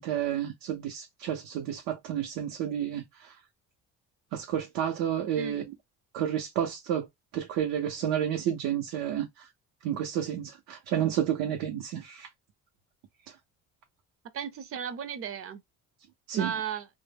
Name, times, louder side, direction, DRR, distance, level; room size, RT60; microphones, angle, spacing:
voice 1, 0.0-3.3 4.3-5.6 6.1-7.1 7.3-9.5 9.8-12.3 16.3-16.5, right 10 dB, 90° right, 0.6 m, -30 dB
voice 2, 14.3-15.6 16.3-16.9, right 7 dB, 45° right, 0.5 m, -35 dB
2.1 x 2.1 x 3.3 m
cardioid pair, 115°, 32 cm